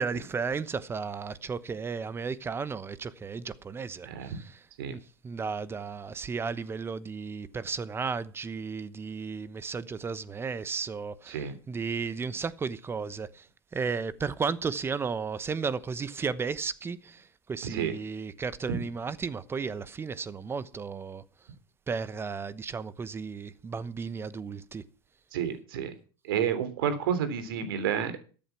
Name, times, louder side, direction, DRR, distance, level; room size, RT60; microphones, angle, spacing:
voice 1, 0.0-4.6 4.9-13.5 13.7-21.2 21.9-24.8, right 5 dB, 20° right, 1.0 m, -34 dB
voice 2, 4.0-4.4 4.8-4.9 11.3-11.5 17.6-17.9 18.7-18.8 25.3-25.9 26.2-28.2, right 8 dB, 80° right, 3.3 m, -30 dB
14.0 x 8.8 x 6.0 m
supercardioid pair, 115°, 12 cm